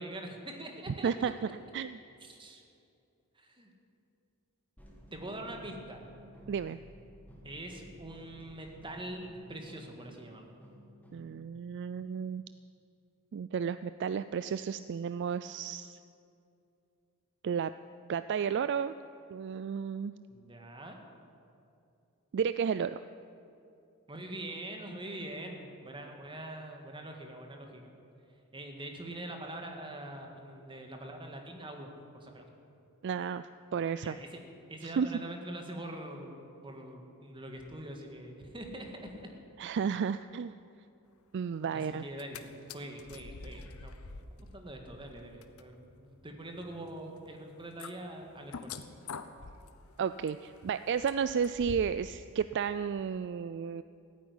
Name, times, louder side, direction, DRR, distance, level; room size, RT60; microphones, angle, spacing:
voice 1, 0.0-1.5 2.2-2.6 3.4-3.7 5.1-6.0 7.4-10.5 20.3-21.0 24.1-27.9 28.5-32.5 34.0-34.4 34.7-39.3 41.7-42.4 42.7-44.0 44.5-48.8, right 1 dB, 25° right, 3 dB, 1.9 m, -44 dB
sound 1, 4.8-11.4, equal, 10° left, 2.1 m, -54 dB
voice 2, 6.5-6.8 11.1-12.4 13.3-16.0 17.4-17.7 18.1-18.9 19.3-20.1 22.3-23.0 33.0-33.5 33.7-34.2 34.8-35.1 39.6-40.5 41.3-42.0 50.0-53.8, right 7 dB, 55° right, 12 dB, 0.3 m, -32 dB
sound 2, 42.0-42.4 42.7-52.1 52.4-52.5, left 4 dB, 75° left, 0.9 m, -47 dB
15.5 x 9.5 x 9.8 m, 2.6 s
head